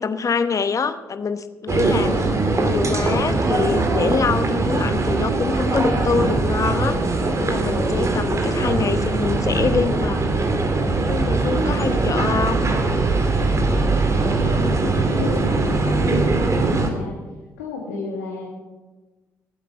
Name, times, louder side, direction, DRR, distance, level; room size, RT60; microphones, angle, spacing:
voice 1, 0.0-7.0 7.4-10.3 11.1-12.7, left 5 dB, 40° left, 11 dB, 1.0 m, -25 dB
sound 1, 1.7-16.9, right 3 dB, 40° right, 2.4 m, -21 dB
voice 2, 14.4-17.1 17.6-18.5, left 4 dB, 85° left, -2 dB, 1.7 m, -31 dB
15.5 x 8.4 x 7.1 m, 1.2 s
hypercardioid pair, 45°, 8 cm